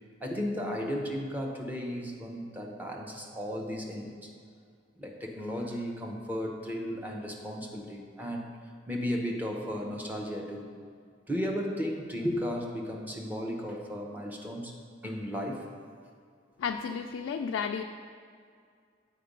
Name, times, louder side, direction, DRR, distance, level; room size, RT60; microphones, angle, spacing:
voice 1, 0.2-4.3 5.0-8.5 8.9-10.7 11.3-14.7 15.0-15.6, equal, 10° right, 0 dB, 0.7 m, -34 dB
voice 2, 16.6-17.8, left 6 dB, 85° left, 4 dB, 0.3 m, -32 dB
8.5 x 4.5 x 5.2 m, 2.2 s
head